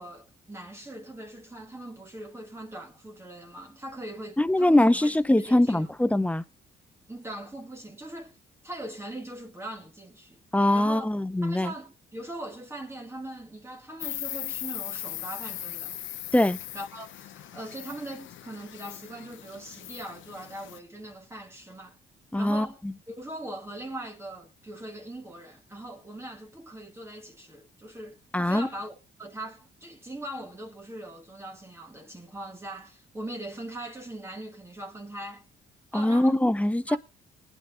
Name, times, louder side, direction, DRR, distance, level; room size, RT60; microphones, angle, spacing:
voice 1, 0.0-5.1 5.4-5.9 7.1-8.4 8.6-10.4 10.7-11.1 11.4-16.0 16.7-22.0 22.4-22.8 23.1-35.5 35.9-36.4 36.9-37.0, right 1 dB, 15° right, 2.3 m, -41 dB
voice 2, 4.4-6.4 10.5-11.7 16.3-16.6 22.3-22.9 28.3-28.7 35.9-37.0, left 1 dB, 5° left, 0.6 m, -22 dB
Insect, 14.0-20.8, left 12 dB, 75° left, 0.8 m, -39 dB
19.5 x 9.2 x 3.9 m
cardioid pair, 90°, 20 cm